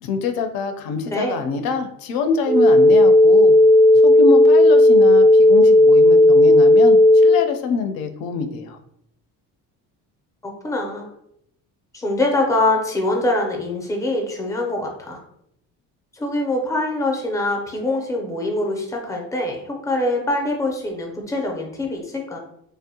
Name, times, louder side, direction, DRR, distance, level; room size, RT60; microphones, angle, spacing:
voice 1, 0.0-3.5 3.9-8.8, left 5 dB, 70° left, 6 dB, 0.5 m, -25 dB
sound 1, 2.5-7.4, left 1 dB, 90° right, 0.5 m, -12 dB
voice 2, 10.4-11.1 11.9-15.2 16.1-22.4, left 2 dB, 10° left, 1 dB, 0.4 m, -24 dB
2.5 x 2.0 x 2.7 m, 0.73 s
cardioid pair, 115°, 38 cm